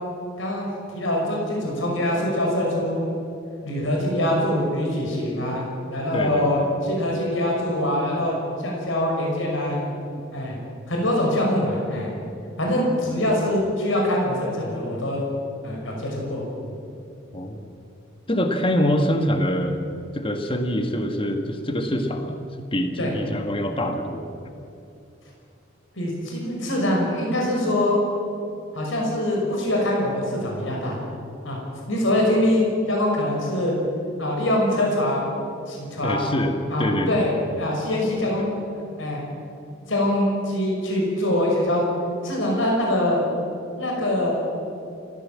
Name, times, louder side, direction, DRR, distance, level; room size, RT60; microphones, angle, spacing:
voice 1, 0.4-3.2 3.6-9.8 10.3-10.6 10.9-12.1 12.6-15.2 15.6-16.4 23.0-23.1 26.0-28.0 28.7-31.0 31.4-31.6 31.9-33.7 34.2-35.3 35.7-36.3 36.7-37.3 37.6-39.2 39.9-41.8 42.2-43.2 43.8-44.3, left 1 dB, 70° left, -1 dB, 5.8 m, -24 dB
voice 2, 6.1-6.7 10.2-10.3 17.3-17.7 18.3-19.8 20.1-22.4 22.7-24.3 36.0-37.3, equal, 25° left, 5 dB, 1.6 m, -25 dB
29.5 x 15.0 x 7.5 m, 2.6 s
head